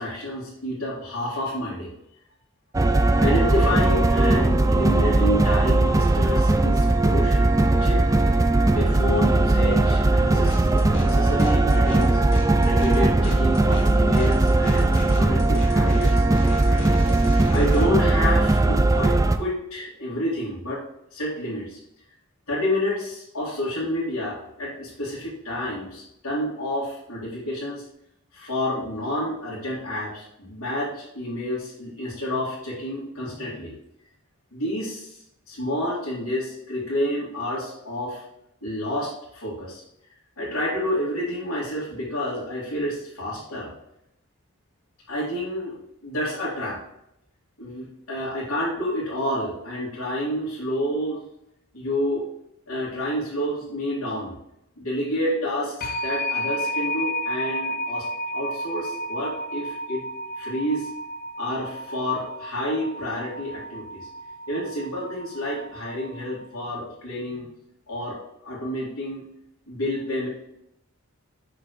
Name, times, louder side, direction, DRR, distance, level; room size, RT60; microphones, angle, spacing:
voice 1, 0.0-1.9 3.2-7.5 7.8-8.0 8.7-12.2 12.6-16.2 17.5-20.8 21.1-21.8 22.5-27.8 28.3-33.7 34.5-38.2 38.6-39.8 40.4-43.7 45.1-45.8 46.0-46.8 47.6-51.2 51.7-52.2 52.7-54.4 54.8-58.1 58.3-60.0 60.4-60.9 61.4-64.1 64.5-67.5 67.9-69.2 69.7-70.3, left 1 dB, 80° left, -9 dB, 2.5 m, -29 dB
sound 1, 2.7-19.4, right 2 dB, 15° right, 0.3 m, -19 dB
sound 2, 10.5-11.1 11.4-17.9, left 1 dB, 60° left, 1.6 m, -36 dB
sound 3, 55.8-66.4, equal, 40° left, 0.8 m, -32 dB
7.0 x 6.4 x 3.2 m, 0.80 s
head